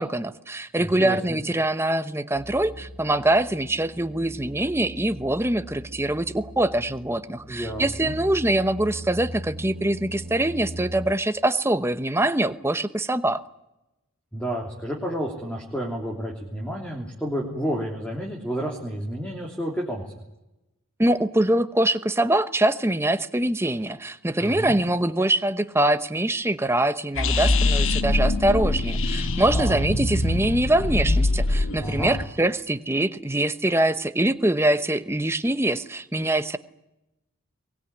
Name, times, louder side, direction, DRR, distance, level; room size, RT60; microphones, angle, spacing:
voice 1, 0.0-13.4 21.0-36.6, right 1 dB, 10° right, 11 dB, 0.9 m, -24 dB
voice 2, 0.8-1.4 7.5-8.1 14.3-20.0 24.4-24.8 29.5-29.8 31.8-32.2, equal, 5° left, -1 dB, 3.2 m, -30 dB
sound 1, 2.3-11.1, equal, 30° right, 1.3 m, -40 dB
sound 2, 27.1-32.2, left 2 dB, 65° left, 1.3 m, -23 dB
23.0 x 19.5 x 9.8 m, 0.92 s
head